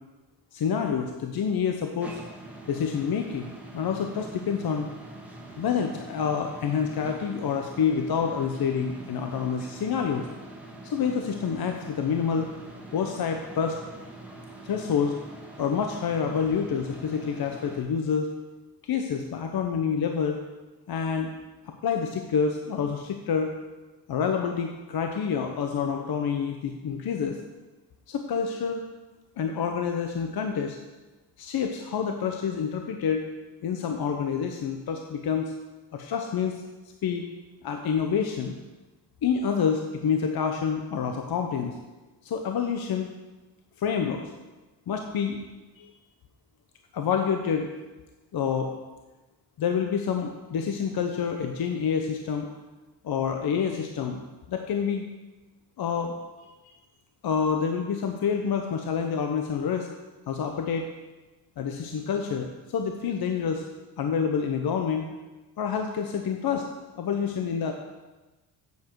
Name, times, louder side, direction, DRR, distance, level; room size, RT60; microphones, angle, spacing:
voice 1, 0.5-2.1 2.7-4.9 5.6-10.3 10.8-12.5 12.9-13.8 14.6-15.1 15.6-18.3 18.9-20.4 20.9-21.3 21.7-23.5 24.1-27.4 28.1-28.8 29.4-30.8 31.4-33.2 33.6-35.5 35.9-36.6 37.0-37.2 37.6-38.5 39.2-41.7 42.2-43.1 43.8-44.3 44.9-45.4 45.8-45.9 46.9-47.7 48.3-48.7 49.6-52.5 53.0-54.2 54.5-55.0 55.8-56.1 57.2-59.9 60.3-60.9 61.6-63.6 64.0-65.1 65.6-66.6 67.0-67.7, left 6 dB, 60° left, 4 dB, 1.0 m, -27 dB
sound 1, 2.0-17.8, right 1 dB, 5° right, 2.0 m, -44 dB
9.5 x 8.4 x 4.7 m, 1.2 s
cardioid pair, 85°, 41 cm